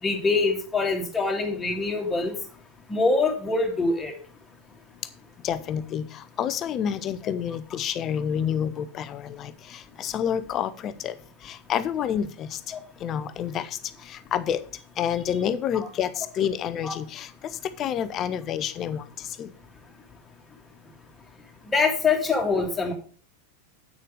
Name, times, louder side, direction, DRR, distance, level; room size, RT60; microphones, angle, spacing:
voice 1, 0.0-2.3 2.9-4.1 12.7-12.8 16.8-16.9 21.7-22.9, left 3 dB, 10° left, 2 dB, 2.1 m, -24 dB
voice 2, 5.4-11.2 11.4-12.6 13.0-14.6 15.0-19.5, left 9 dB, 30° left, 14 dB, 0.7 m, -29 dB
8.7 x 6.7 x 5.0 m, 0.41 s
figure-of-eight pair, 90°, 0 cm